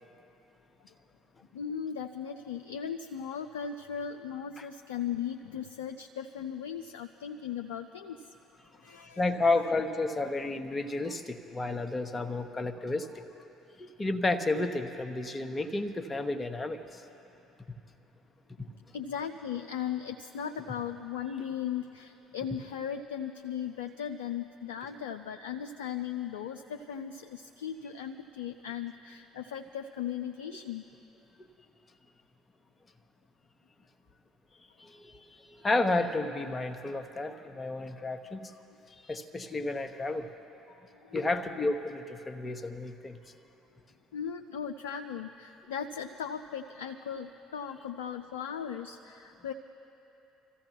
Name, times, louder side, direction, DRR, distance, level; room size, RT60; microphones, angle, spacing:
voice 1, 1.5-8.3 8.7-9.7 18.6-30.8 40.9-41.2 44.1-49.5, left 8 dB, 75° left, 5 dB, 0.4 m, -37 dB
voice 2, 9.2-13.2 13.8-17.0 18.6-18.7 34.8-38.5 39.1-40.3 41.1-43.2, left 2 dB, 25° left, 7 dB, 1.1 m, -31 dB
27.5 x 14.5 x 3.0 m, 3.0 s
hypercardioid pair, 55°, 0 cm